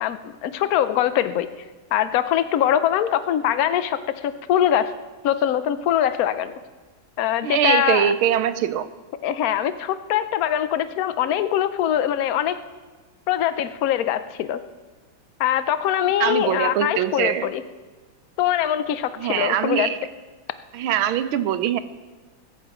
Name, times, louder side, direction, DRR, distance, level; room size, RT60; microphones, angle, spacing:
voice 1, 0.0-1.5 1.9-4.0 4.2-4.9 5.2-6.5 7.2-8.1 9.2-12.6 13.3-14.6 15.4-17.6 18.4-19.9, left 11 dB, 65° left, 12 dB, 0.9 m, -22 dB
voice 2, 7.4-8.9 16.2-17.5 19.2-20.0 20.7-21.8, right 10 dB, 90° right, 12 dB, 1.6 m, -22 dB
20.5 x 9.8 x 5.1 m, 1.3 s
omnidirectional pair, 2.2 m